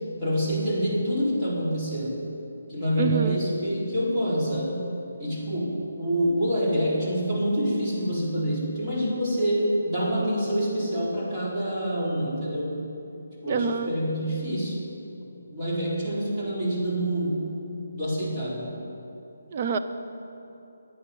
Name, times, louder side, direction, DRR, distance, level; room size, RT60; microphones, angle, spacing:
voice 1, 0.2-2.2 2.7-4.9 5.2-12.8 13.4-14.8 15.5-17.4 17.9-18.7, equal, 15° right, -9 dB, 4.1 m, -26 dB
voice 2, 3.0-3.4 13.5-13.9 19.5-19.8, right 6 dB, 35° right, 8 dB, 0.8 m, -26 dB
22.5 x 8.7 x 5.6 m, 2.9 s
hypercardioid pair, 165°, 0 cm